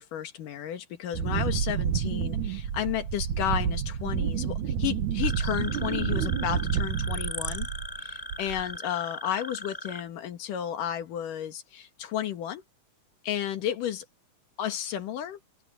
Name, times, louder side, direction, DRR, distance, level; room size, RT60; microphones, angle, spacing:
voice 1, 0.0-7.7 8.0-12.6 13.2-14.0 14.6-15.4, left 11 dB, 80° left, 3.3 m, -32 dB
Wind, 1.1-8.0 8.3-8.8, right 8 dB, 70° right, 2.7 m, -29 dB
sound 1, 5.2-10.0, left 1 dB, 10° left, 5.3 m, -38 dB
open air
omnidirectional pair, 3.7 m